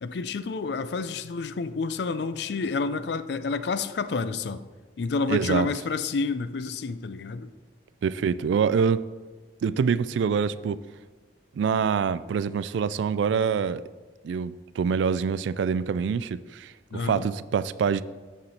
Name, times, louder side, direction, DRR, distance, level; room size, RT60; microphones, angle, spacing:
voice 1, 0.0-4.6 5.0-7.5 16.9-17.3, left 4 dB, 60° left, 12 dB, 0.4 m, -29 dB
voice 2, 5.3-5.7 8.0-9.0 9.6-10.8 11.6-13.8 14.2-18.0, right 6 dB, 75° right, 16 dB, 0.3 m, -25 dB
7.3 x 6.6 x 4.2 m, 1.3 s
head